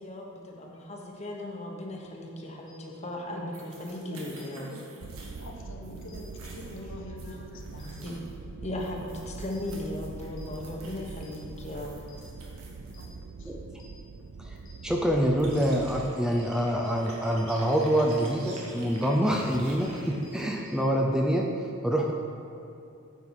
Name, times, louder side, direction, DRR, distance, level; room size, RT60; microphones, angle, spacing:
voice 1, 0.0-4.7 7.2-7.4 7.8-8.2 8.6-11.9, left 1 dB, 30° left, 0 dB, 1.1 m, -37 dB
sound 1, 2.7-2.8 4.4-4.5 6.1-6.2 7.8-7.9 9.5-9.6 10.4-10.5 11.2-11.3 12.1-12.2 12.9-13.0 13.8-13.9 14.7-14.8 15.5-15.6 16.4-16.5 16.8-16.9 17.2-17.3 17.7-17.8 18.1-18.2 18.5-18.6 18.9-19.0 19.4-19.5 19.8-19.9 20.2-20.3 20.7-20.8, left 7 dB, 75° left, 1.7 m, -56 dB
voice 2, 3.2-8.0 13.0-13.5, left 1 dB, 60° left, 2 dB, 0.9 m, -45 dB
sound 2, 3.5-8.3 8.8-13.1 14.6-14.7 14.9-20.8, right 1 dB, 90° right, 1.6 m, -47 dB
sound 3, 5.0-16.1, right 4 dB, 75° right, 0.4 m, -43 dB
voice 3, 14.8-22.1, equal, 5° right, 0 dB, 0.5 m, -26 dB
9.3 x 5.6 x 4.8 m, 2.7 s
head